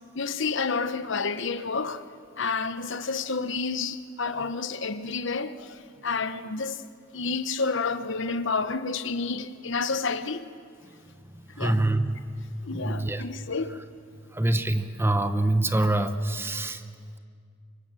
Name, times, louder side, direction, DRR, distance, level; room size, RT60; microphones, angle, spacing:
voice 1, 0.1-2.0 2.4-6.8 7.1-10.5 11.6-11.8 12.6-13.7, left 4 dB, 65° left, 1.0 m, -30 dB
voice 2, 11.3-12.2 12.7-13.2 14.3-16.8, right 1 dB, 10° right, 0.9 m, -25 dB
25.5 x 24.5 x 7.6 m
head